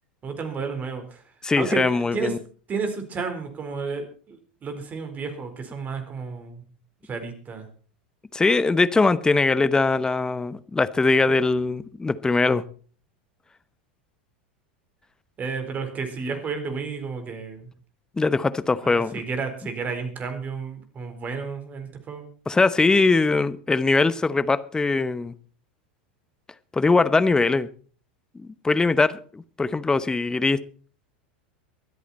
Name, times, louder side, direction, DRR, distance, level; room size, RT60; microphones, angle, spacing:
voice 1, 0.2-1.2 1.6-2.3 2.7-6.6 7.0-7.7 15.4-17.7 18.8-22.3, right 5 dB, 30° right, 4.2 m, -32 dB
voice 2, 1.4-2.4 8.3-12.6 18.2-19.2 22.5-25.3 26.7-27.7 28.3-30.6, left 3 dB, 15° left, 1.0 m, -21 dB
24.0 x 8.4 x 4.3 m
hypercardioid pair, 90°, 5 cm